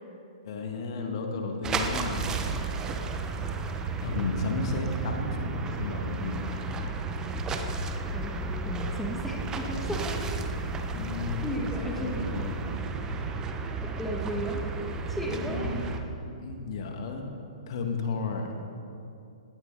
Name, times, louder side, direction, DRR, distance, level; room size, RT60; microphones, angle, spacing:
voice 1, 0.4-2.3 4.0-6.4 10.9-12.6 15.2-15.9 16.4-17.2 17.7-18.6, left 4 dB, 50° left, 3 dB, 2.4 m, -33 dB
sound 1, 1.6-16.0, right 4 dB, 15° right, 1.2 m, -33 dB
voice 2, 8.7-10.3 11.4-12.2 13.8-14.7 15.1-15.9, equal, 5° left, -1 dB, 1.8 m, -35 dB
19.0 x 17.5 x 4.2 m, 2.6 s
figure-of-eight pair, 115°, 4 cm